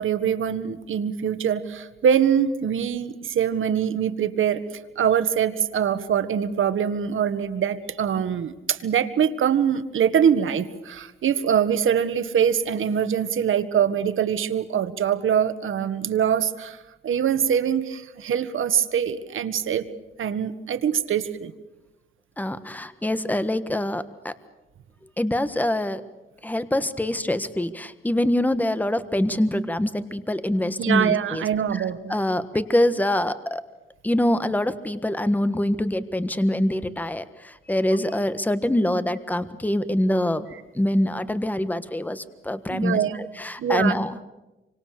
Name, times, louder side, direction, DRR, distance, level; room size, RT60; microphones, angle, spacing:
voice 1, 0.0-4.6 4.9-16.8 17.0-19.9 20.2-21.5 30.8-32.1 42.7-43.2 43.6-44.0, right 8 dB, 75° right, 11 dB, 1.7 m, -23 dB
voice 2, 22.4-24.3 25.2-26.0 26.4-31.5 31.7-31.8 32.1-33.6 34.0-40.5 40.7-44.1, left 1 dB, 10° left, 12 dB, 1.5 m, -24 dB
28.0 x 25.0 x 6.8 m, 1.0 s
cardioid pair, 100°, 21 cm